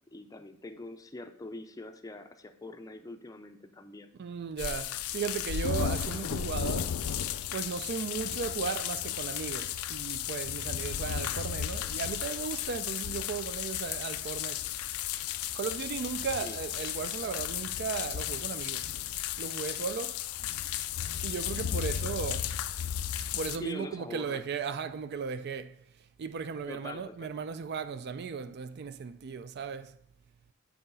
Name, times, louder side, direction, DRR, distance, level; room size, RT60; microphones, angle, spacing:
voice 1, 0.1-4.1 16.4-16.6 23.5-24.4 26.7-27.3, left 2 dB, 15° left, 0.5 m, -44 dB
voice 2, 4.2-7.0 7.5-14.6 15.5-18.9 19.4-20.2 21.2-22.5 23.3-25.8 26.2-30.0, right 6 dB, 50° right, 0.4 m, -36 dB
sound 1, 4.6-23.6, left 10 dB, 85° left, 0.4 m, -34 dB
7.8 x 3.9 x 5.4 m
head